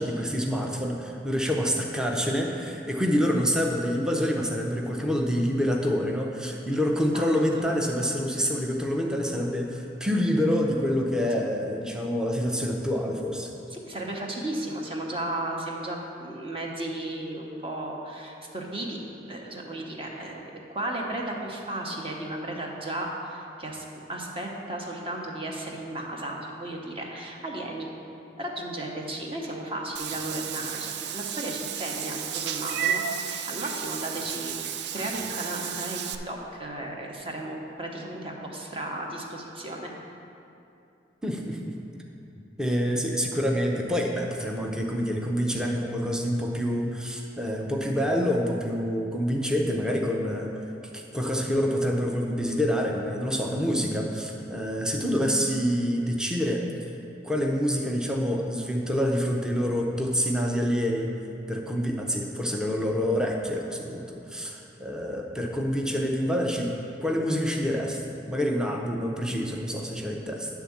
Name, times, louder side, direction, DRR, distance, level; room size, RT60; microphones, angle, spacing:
voice 1, 0.0-13.5 41.2-41.7 42.6-50.5 50.9-56.6 57.2-61.1 61.5-70.5, equal, 5° right, 0 dB, 0.5 m, -27 dB
voice 2, 7.1-7.7 13.7-19.0 19.3-27.9 28.4-34.6 34.9-39.9, right 1 dB, 30° right, 0 dB, 0.9 m, -34 dB
Meow / Water / Bathtub (filling or washing), 30.0-36.2, right 8 dB, 60° right, 0.4 m, -32 dB
9.7 x 3.6 x 7.1 m, 2.7 s
head